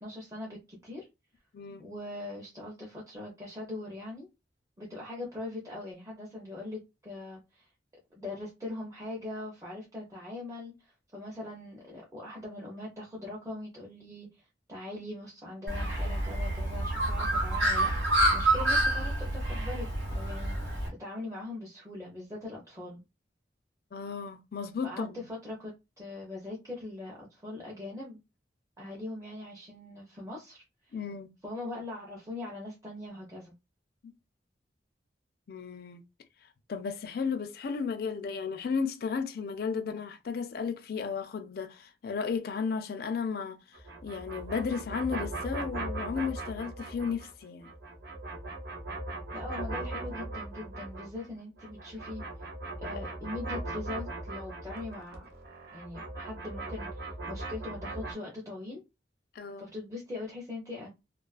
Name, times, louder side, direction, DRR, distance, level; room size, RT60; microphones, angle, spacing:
voice 1, 0.0-1.1 1.8-4.3 4.8-7.7 8.1-23.0 24.8-28.2 28.8-31.0 31.4-33.5 49.3-52.2 52.8-55.3 55.7-58.8 59.6-60.9, left 2 dB, 15° right, 0.5 m, -41 dB
voice 2, 1.5-1.8 23.9-25.3 30.9-31.3 35.5-36.0 36.7-47.7 59.3-59.7, left 5 dB, 55° left, 0.4 m, -34 dB
Bird, 15.7-20.9, right 1 dB, 75° right, 1.1 m, -28 dB
sound 1, 43.7-47.3 47.6-51.3 51.6-58.1, right 2 dB, 55° right, 0.6 m, -39 dB
2.3 x 2.3 x 2.3 m
head